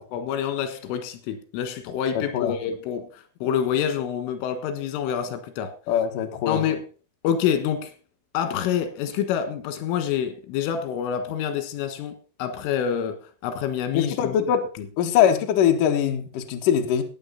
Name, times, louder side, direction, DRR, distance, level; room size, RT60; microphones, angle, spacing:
voice 1, 0.0-5.7 6.5-6.9 7.2-7.9 8.3-14.4 14.8-14.9, left 8 dB, 85° left, 4.1 m, -27 dB
voice 2, 5.9-6.6 13.9-14.7 15.0-17.0, left 9 dB, 65° left, 2.3 m, -22 dB
15.5 x 9.3 x 4.1 m
omnidirectional pair, 5.6 m